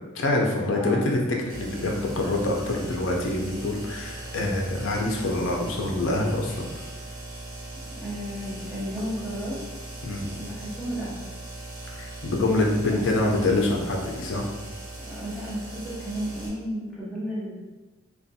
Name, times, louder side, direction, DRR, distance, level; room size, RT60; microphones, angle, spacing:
voice 1, 0.1-6.6 10.0-10.3 12.0-14.4, left 2 dB, 65° left, 0 dB, 0.5 m, -25 dB
voice 2, 0.7-1.1 8.0-9.6 10.3-11.2 12.8-13.1 15.0-17.6, equal, ahead, -10 dB, 0.6 m, -33 dB
sound 1, 1.5-16.5, right 2 dB, 40° right, 0.6 m, -39 dB
2.5 x 2.2 x 2.6 m, 1.2 s
head